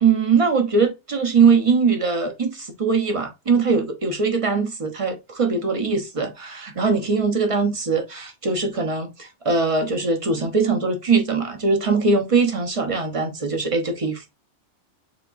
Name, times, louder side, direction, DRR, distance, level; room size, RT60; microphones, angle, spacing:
voice 1, 0.0-14.3, right 4 dB, 30° right, 0.9 m, -21 dB
7.0 x 2.9 x 2.5 m
omnidirectional pair, 1.2 m